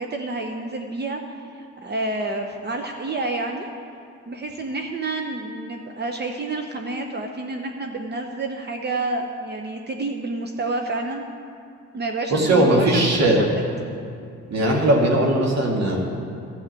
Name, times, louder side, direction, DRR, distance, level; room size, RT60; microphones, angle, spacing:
voice 1, 0.0-3.7 4.3-11.3 11.9-13.6, right 2 dB, 35° right, 3 dB, 0.9 m, -29 dB
voice 2, 12.3-13.4 14.5-16.0, right 1 dB, 60° right, -1 dB, 2.2 m, -19 dB
12.0 x 6.6 x 9.0 m, 2.4 s
cardioid pair, 90°, 30 cm